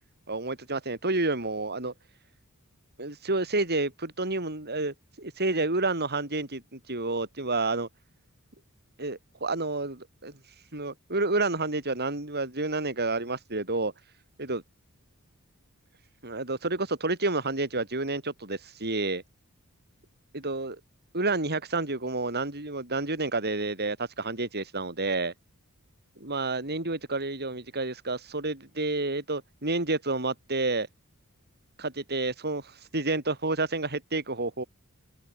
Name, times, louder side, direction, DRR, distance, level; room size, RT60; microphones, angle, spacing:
voice 1, 0.3-1.9 3.0-7.9 9.0-10.3 10.7-13.9 14.4-14.6 16.2-19.2 20.3-20.8 21.1-25.3 26.2-30.9 31.8-34.6, right 2 dB, 50° right, 6.6 m, -29 dB
head